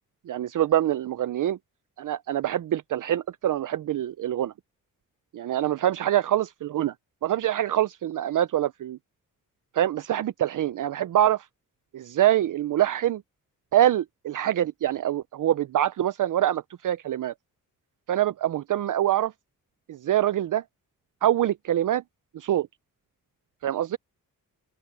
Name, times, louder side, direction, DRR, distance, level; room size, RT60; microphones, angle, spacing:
voice 1, 0.3-1.6 2.0-4.5 5.3-6.9 7.2-9.0 9.7-11.4 11.9-13.2 13.7-17.3 18.1-19.3 19.9-20.6 21.2-22.0 22.3-22.7 23.6-24.0, right 12 dB, 65° right, 0.5 m, -25 dB
wide cardioid pair, 110°, 34 cm